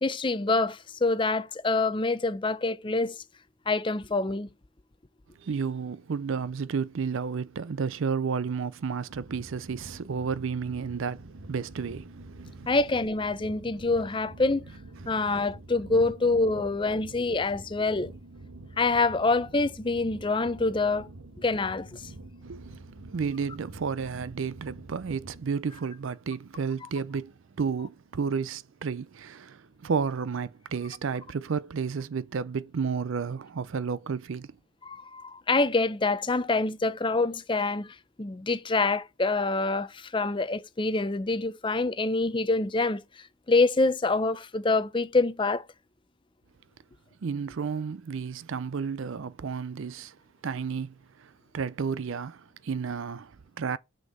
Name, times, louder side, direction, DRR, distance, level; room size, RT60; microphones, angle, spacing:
voice 1, 0.0-3.2 3.7-4.5 12.7-14.6 15.1-18.1 18.8-21.1 21.4-22.0 34.8-43.0 43.5-45.6, left 3 dB, 20° left, 0.5 m, -26 dB
voice 2, 5.4-12.7 15.0-15.4 22.4-22.7 23.1-34.5 47.2-50.2 50.4-53.8, right 5 dB, 60° right, 0.4 m, -32 dB
sound 1, 9.1-25.5, right 2 dB, 85° right, 1.3 m, -46 dB
6.4 x 5.3 x 4.0 m
head